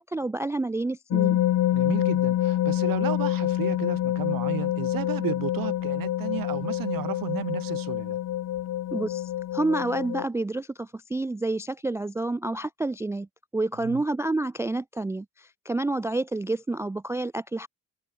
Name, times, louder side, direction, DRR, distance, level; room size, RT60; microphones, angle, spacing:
voice 1, 0.0-1.4 8.9-13.3 13.5-17.7, right 2 dB, 10° right, 0.3 m, -29 dB
sound 1, 1.1-10.2, left 13 dB, 70° left, 1.0 m, -26 dB
voice 2, 1.7-8.2 13.8-14.0, right 13 dB, 80° right, 1.4 m, -33 dB
cardioid pair, 85°, 34 cm